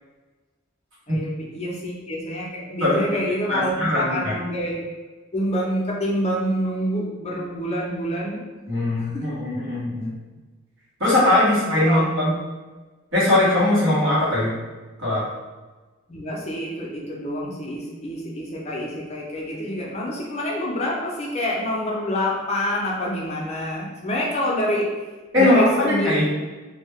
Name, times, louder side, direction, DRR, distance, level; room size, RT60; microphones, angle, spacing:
voice 1, 1.1-4.8 5.3-8.4 9.0-9.2 11.8-12.0 16.1-24.9 25.4-26.3, equal, 35° left, -3 dB, 0.5 m, -27 dB
voice 2, 2.8-3.1 3.5-4.3 8.7-10.1 11.0-12.3 13.1-14.5 15.0-15.2 25.3-26.3, left 1 dB, 70° right, -8 dB, 1.3 m, -20 dB
2.6 x 2.1 x 3.4 m, 1.3 s
head